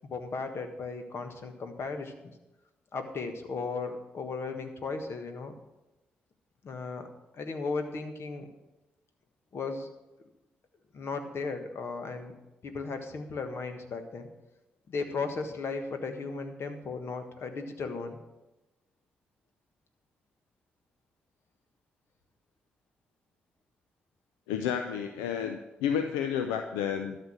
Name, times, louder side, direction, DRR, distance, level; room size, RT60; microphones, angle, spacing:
voice 1, 0.0-2.3 2.9-5.5 6.6-7.1 7.3-8.5 9.5-9.9 10.9-12.3 12.6-14.3 14.9-18.2, left 4 dB, 55° left, 6 dB, 1.5 m, -36 dB
voice 2, 24.5-27.2, left 8 dB, 85° left, 7 dB, 0.5 m, -31 dB
12.5 x 6.7 x 6.5 m, 1.0 s
hypercardioid pair, 40°, 5 cm